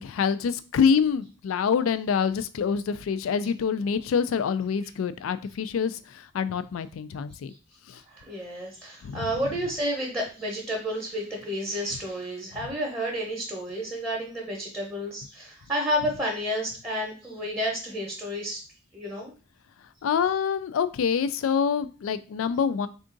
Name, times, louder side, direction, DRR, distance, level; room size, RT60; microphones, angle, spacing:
voice 1, 0.0-7.5 7.9-8.0 9.0-9.3 20.0-22.9, left 6 dB, 80° left, 14 dB, 0.3 m, -26 dB
voice 2, 8.1-18.6 18.9-19.3, equal, 10° right, -2 dB, 0.8 m, -31 dB
3.6 x 2.5 x 3.8 m, 0.35 s
head